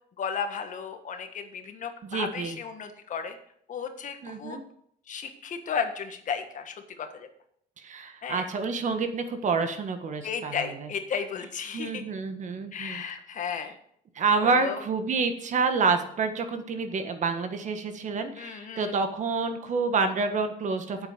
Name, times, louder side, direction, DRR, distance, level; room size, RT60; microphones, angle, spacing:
voice 1, 0.2-3.4 3.7-4.6 5.1-7.3 8.2-8.5 10.2-12.0 12.7-13.7 14.4-14.8 18.4-18.9, left 6 dB, 50° left, 7 dB, 1.6 m, -34 dB
voice 2, 2.0-2.6 4.2-4.6 7.8-10.9 11.7-13.0 14.1-21.0, right 4 dB, 45° right, 8 dB, 1.5 m, -28 dB
9.0 x 8.0 x 6.7 m, 0.68 s
cardioid pair, 110°, 17 cm